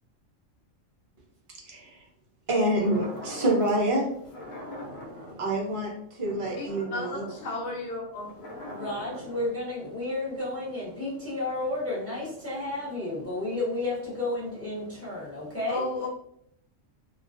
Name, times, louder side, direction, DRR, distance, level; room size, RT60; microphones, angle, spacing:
voice 1, 1.6-2.0 2.5-4.1 5.4-7.3, right 1 dB, 60° right, -2 dB, 0.3 m, -27 dB
sound 1, 2.8-3.8 4.2-9.5, left 1 dB, 85° left, 1.0 m, -42 dB
voice 2, 4.5-5.4 8.2-15.9, left 2 dB, 15° left, -6 dB, 0.6 m, -33 dB
voice 3, 6.6-8.5 15.7-16.1, left 2 dB, 65° left, -3 dB, 0.9 m, -34 dB
2.3 x 2.2 x 2.4 m, 0.68 s
omnidirectional pair, 1.4 m